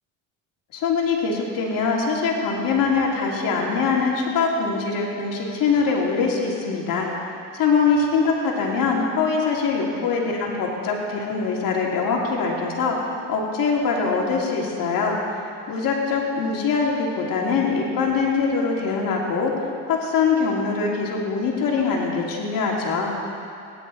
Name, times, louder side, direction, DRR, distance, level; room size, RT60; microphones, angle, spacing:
voice 1, 0.7-7.1 7.5-13.0 13.3-15.2 15.7-19.5 19.9-23.1, left 5 dB, 60° left, -2 dB, 2.9 m, -23 dB
19.0 x 10.5 x 4.2 m, 2.5 s
supercardioid pair, 85°, 38 cm